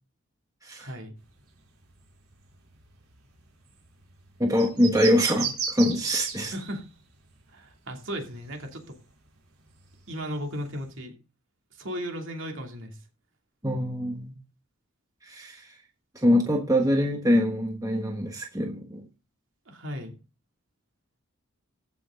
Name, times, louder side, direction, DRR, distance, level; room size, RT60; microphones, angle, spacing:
voice 1, 0.8-1.1 6.5-6.8 7.5-9.0 10.1-11.1 11.7-13.0 19.7-20.1, equal, 60° right, 3 dB, 2.7 m, -36 dB
sound 1, 1.2-8.9 9.2-10.9, right 7 dB, 85° right, 3.5 m, -37 dB
voice 2, 4.4-6.5 13.6-14.3 15.2-15.8 16.1-19.0, equal, 15° right, 2 dB, 1.2 m, -24 dB
15.0 x 6.3 x 3.8 m, 0.33 s
head